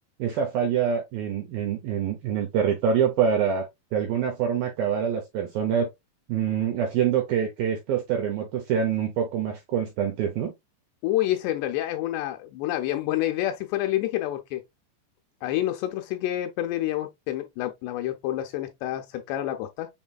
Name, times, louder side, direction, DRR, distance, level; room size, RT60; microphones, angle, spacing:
voice 1, 0.2-3.7 3.9-5.9 6.3-10.5, right 8 dB, 80° right, 2.1 m, -25 dB
voice 2, 11.0-14.6 15.4-19.9, left 14 dB, 80° left, 2.7 m, -28 dB
7.3 x 3.1 x 2.3 m
omnidirectional pair, 5.1 m